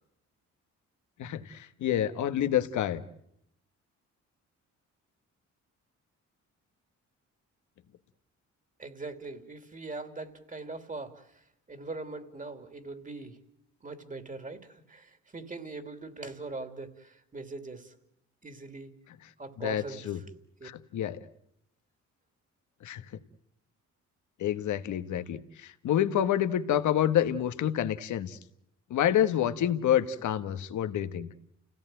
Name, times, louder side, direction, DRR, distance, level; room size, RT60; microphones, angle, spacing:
voice 1, 1.2-3.0 19.6-20.2 20.6-21.2 22.8-23.2 24.4-28.4 28.9-31.3, left 10 dB, 75° left, 11 dB, 1.5 m, -28 dB
voice 2, 8.8-11.3 11.7-13.4 13.8-17.9 18.4-18.9 19.4-20.2 20.6-20.7, right 3 dB, 25° right, 9 dB, 2.8 m, -41 dB
29.5 x 17.5 x 9.0 m, 0.77 s
cardioid pair, 90°, 30 cm